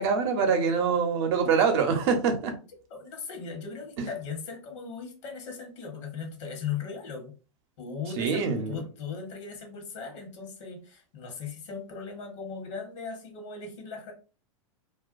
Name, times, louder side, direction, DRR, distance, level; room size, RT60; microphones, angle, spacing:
voice 1, 0.0-2.5 4.0-4.1 8.2-8.8, right 5 dB, 55° right, 5 dB, 0.7 m, -25 dB
voice 2, 2.9-7.3 7.8-14.1, left 5 dB, 65° left, 3 dB, 1.0 m, -38 dB
2.4 x 2.2 x 2.4 m, 0.35 s
hypercardioid pair, 115°, 17 cm